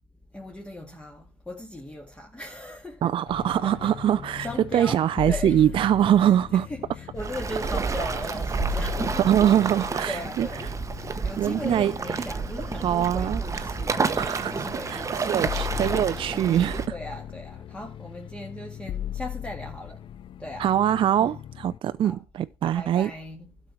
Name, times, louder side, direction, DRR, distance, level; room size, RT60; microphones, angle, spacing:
voice 1, 0.3-3.2 3.6-4.0 4.4-5.9 6.2-15.7 16.0-16.2 16.9-20.8 21.1-21.4 22.0-22.2 22.6-23.6, left 1 dB, 10° left, 2.1 m, -39 dB
voice 2, 3.0-4.5 4.7-6.7 9.1-10.5 11.4-11.9 12.8-13.4 14.1-16.9 20.6-23.1, right 10 dB, 40° right, 0.5 m, -23 dB
sound 1, 3.3-21.8, left 11 dB, 40° left, 0.5 m, -38 dB
Waves surf, 7.2-16.9, right 4 dB, 25° right, 1.1 m, -30 dB
12.5 x 6.0 x 4.7 m
hypercardioid pair, 75°, 13 cm